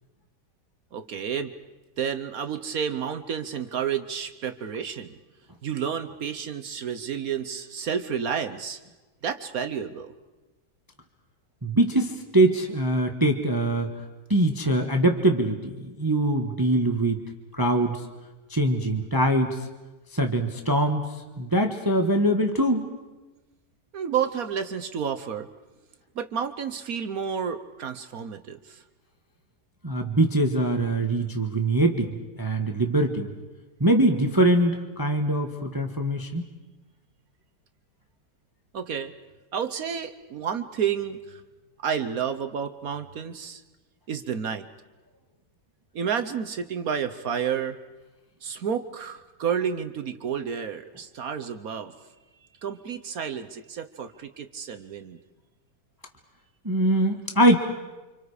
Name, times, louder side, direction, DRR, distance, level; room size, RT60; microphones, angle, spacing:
voice 1, 0.9-1.5 2.0-5.1 5.6-8.8 9.2-10.1 23.9-25.5 26.1-28.8 38.7-39.1 39.5-41.4 41.8-43.6 44.1-44.6 45.9-47.8 48.4-51.9 52.6-55.2, right 7 dB, 60° right, 9 dB, 1.3 m, -30 dB
voice 2, 11.6-13.9 14.3-17.2 17.5-18.0 18.5-19.6 20.1-22.9 29.8-33.3 33.8-36.5 56.6-57.6, right 1 dB, 15° right, 5 dB, 1.3 m, -23 dB
30.0 x 26.5 x 4.9 m, 1.2 s
omnidirectional pair, 1.8 m